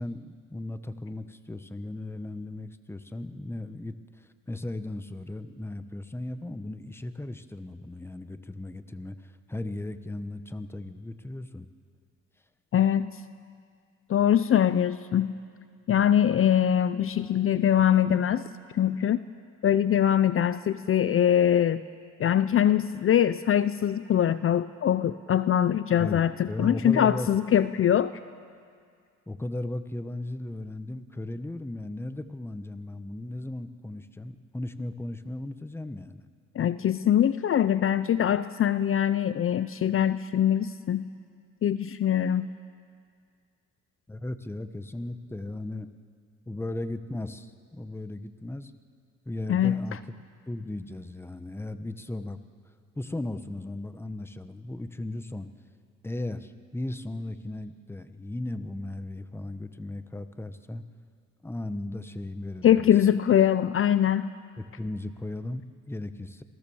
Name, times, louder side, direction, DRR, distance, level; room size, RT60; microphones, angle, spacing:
voice 1, 0.0-11.7 26.0-27.4 29.3-36.2 44.1-45.9 46.5-48.7 49.2-50.0 50.5-52.4 52.7-55.5 56.0-60.8 61.4-62.9 64.6-66.4, left 1 dB, 10° left, 11 dB, 1.0 m, -36 dB
voice 2, 12.7-13.1 14.1-15.3 15.9-18.4 18.7-19.2 19.6-21.8 22.2-28.1 36.6-41.1 41.6-42.5 49.5-49.8 62.6-64.3, left 10 dB, 45° left, 14 dB, 0.6 m, -23 dB
26.5 x 17.5 x 7.1 m, 2.2 s
cardioid pair, 90°, 30 cm